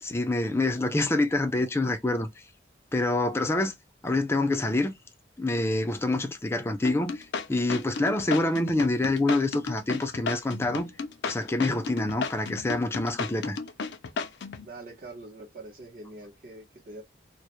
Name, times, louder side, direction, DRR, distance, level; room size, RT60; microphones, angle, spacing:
voice 1, 0.0-2.3 2.9-3.7 4.0-4.9 5.4-10.9 11.2-13.6, left 2 dB, 15° left, 0.3 m, -26 dB
sound 1, 6.8-14.7, left 4 dB, 85° left, 0.4 m, -33 dB
voice 2, 14.6-17.0, right 2 dB, 50° right, 0.7 m, -44 dB
2.1 x 2.0 x 2.8 m
head